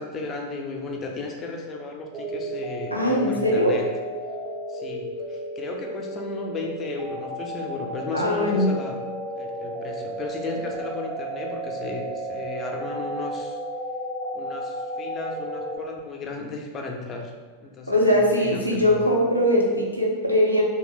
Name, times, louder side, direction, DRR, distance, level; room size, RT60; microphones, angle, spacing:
voice 1, 0.0-3.8 4.7-9.0 9.4-13.6 14.3-17.3 17.6-19.0, left 3 dB, 25° left, 1 dB, 0.5 m, -35 dB
sound 1, 2.1-15.8, right 1 dB, 30° right, 0.5 m, -33 dB
voice 2, 2.9-3.8 8.1-8.7 17.9-20.6, left 1 dB, 90° right, -2 dB, 0.5 m, -21 dB
3.1 x 2.3 x 3.0 m, 1.4 s
figure-of-eight pair, 90°, 0 cm